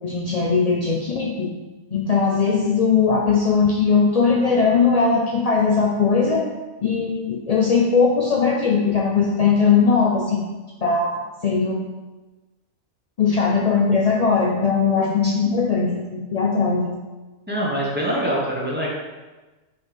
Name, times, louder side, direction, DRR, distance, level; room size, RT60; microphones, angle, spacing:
voice 1, 0.0-1.5 1.9-6.5 6.8-10.4 10.8-11.8 13.2-16.9, left 5 dB, 60° left, -2 dB, 0.4 m, -19 dB
voice 2, 17.5-18.9, equal, 10° right, -5 dB, 1.2 m, -24 dB
5.8 x 3.5 x 5.1 m, 1.2 s
omnidirectional pair, 1.5 m